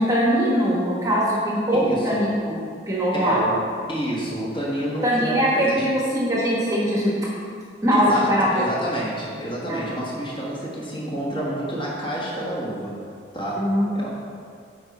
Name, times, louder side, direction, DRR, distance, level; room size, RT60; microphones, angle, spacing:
voice 1, 0.0-2.5 2.9-3.4 5.0-7.1 7.8-8.6 9.7-9.8 13.6-14.1, equal, 20° right, -5 dB, 1.1 m, -21 dB
voice 2, 1.7-2.3 3.1-5.9 7.9-13.0 13.3-14.1, right 1 dB, 25° left, -6 dB, 1.5 m, -29 dB
8.7 x 4.8 x 4.1 m, 2.2 s
head